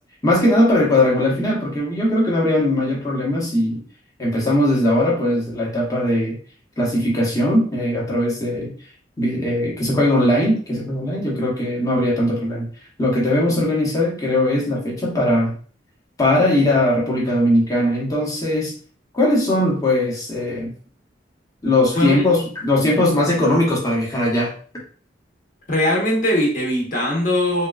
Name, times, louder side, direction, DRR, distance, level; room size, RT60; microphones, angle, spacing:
voice 1, 0.2-3.8 4.2-6.4 6.8-8.7 9.2-12.7 13.0-15.6 16.2-18.7 19.1-20.7 21.6-24.5, left 1 dB, 20° left, -4 dB, 0.9 m, -19 dB
voice 2, 25.7-27.7, left 1 dB, 45° left, -3 dB, 1.0 m, -20 dB
3.6 x 2.3 x 2.3 m, 0.43 s
head